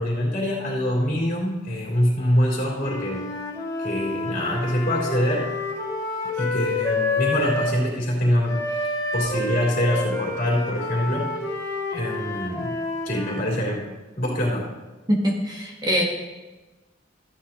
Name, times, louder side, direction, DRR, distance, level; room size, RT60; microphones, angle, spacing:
voice 1, 0.0-3.3 3.8-5.5 6.3-11.3 11.9-12.7 13.0-13.9 14.2-14.8, left 1 dB, 50° left, -3 dB, 3.1 m, -24 dB
Wind instrument woodwind instrument, 2.8-7.8 8.5-13.5, left 2 dB, 20° left, 2.4 m, -29 dB
voice 2, 15.1-16.0, equal, 20° right, -1 dB, 1.2 m, -23 dB
14.0 x 9.4 x 2.9 m, 1.2 s
head